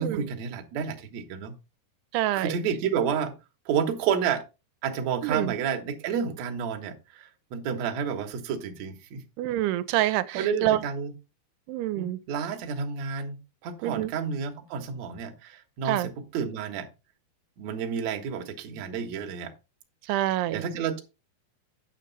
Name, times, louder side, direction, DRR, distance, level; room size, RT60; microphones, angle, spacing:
voice 1, 0.0-1.6 2.3-3.3 3.7-4.4 4.8-9.2 10.0-11.1 12.0-13.4 13.6-16.9 17.6-19.5 20.5-21.0, right 7 dB, 65° right, 1.9 m, -30 dB
voice 2, 2.1-2.6 5.2-5.5 9.4-10.8 11.7-12.2 13.8-14.1 15.9-16.1 20.1-20.6, right 14 dB, 85° right, 2.6 m, -27 dB
9.0 x 6.5 x 4.0 m
omnidirectional pair, 4.6 m